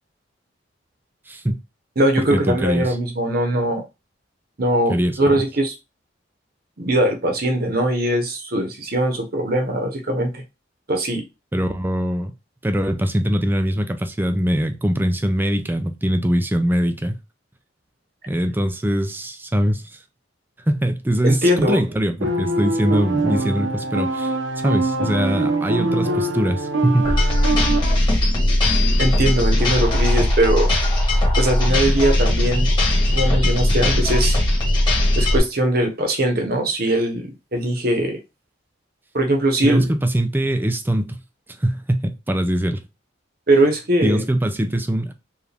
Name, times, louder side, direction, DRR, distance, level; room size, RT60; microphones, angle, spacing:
voice 1, 1.3-1.6 2.2-3.0 4.9-5.4 11.5-12.3 12.6-17.2 18.3-20.0 20.7-27.1 27.5-27.6 39.6-41.2 41.6-42.8 44.0-45.1, equal, 10° right, 0.4 m, -22 dB
voice 2, 2.0-3.8 4.6-5.7 6.8-10.4 10.9-11.2 21.2-21.8 29.0-30.7 31.4-32.7 33.1-34.4 35.2-38.2 39.1-39.9 43.5-44.2, right 1 dB, 50° right, 1.1 m, -21 dB
sound 1, 22.2-27.8, right 2 dB, 80° right, 0.7 m, -23 dB
sound 2, 27.0-35.4, left 1 dB, 25° left, 1.5 m, -18 dB
4.7 x 2.5 x 3.4 m
head